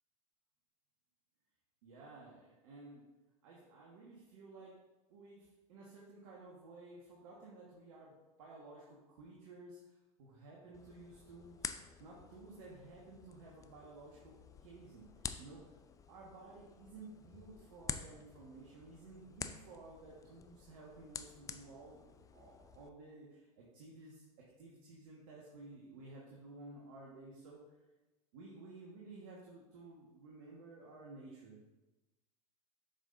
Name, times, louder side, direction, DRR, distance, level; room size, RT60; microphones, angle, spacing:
voice 1, 1.8-3.0 3.4-4.7 5.1-8.1 8.4-11.7 12.0-14.3 14.6-15.1 15.4-15.7 16.1-22.0 22.3-24.2 24.6-27.6 28.3-31.6, right 2 dB, 65° right, -4 dB, 1.5 m, -54 dB
sound 1, 10.7-22.9, left 6 dB, 15° left, 0.4 m, -49 dB
7.2 x 5.6 x 2.6 m, 1.1 s
hypercardioid pair, 90°, 19 cm